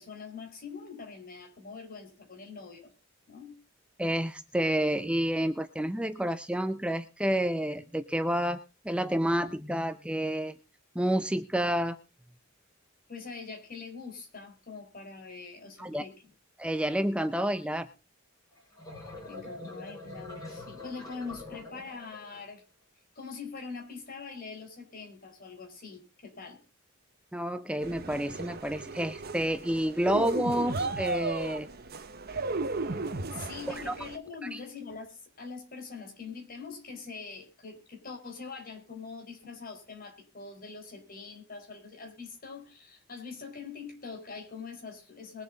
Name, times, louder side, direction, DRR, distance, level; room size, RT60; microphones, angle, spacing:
voice 1, 0.0-2.9 3.3-3.6 13.1-16.1 19.0-22.6 23.1-26.6 33.3-45.4, left 4 dB, 45° left, 3 dB, 4.4 m, -43 dB
voice 2, 4.0-8.6 8.8-10.6 10.9-12.0 15.8-16.0 16.6-17.9 27.3-31.7 33.7-33.9 34.5-34.6, equal, 5° right, 9 dB, 0.6 m, -29 dB
sound 1, 18.6-22.4, left 2 dB, 20° left, 4.9 m, -44 dB
sound 2, 27.8-34.2, right 3 dB, 50° right, 1.3 m, -35 dB
22.0 x 7.8 x 3.9 m, 0.31 s
head